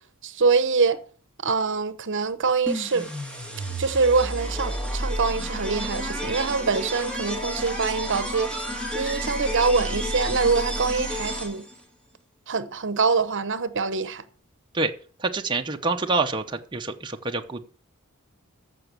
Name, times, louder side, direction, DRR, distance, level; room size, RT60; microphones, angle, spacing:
voice 1, 0.2-1.0 1.4-3.1 3.8-8.5 8.9-11.6 12.5-14.2, right 4 dB, 60° right, 0.9 m, -24 dB
sound 1, 2.7-11.8, equal, 5° left, 2.0 m, -31 dB
voice 2, 15.2-17.7, right 3 dB, 20° right, 0.8 m, -26 dB
14.0 x 5.9 x 6.8 m
head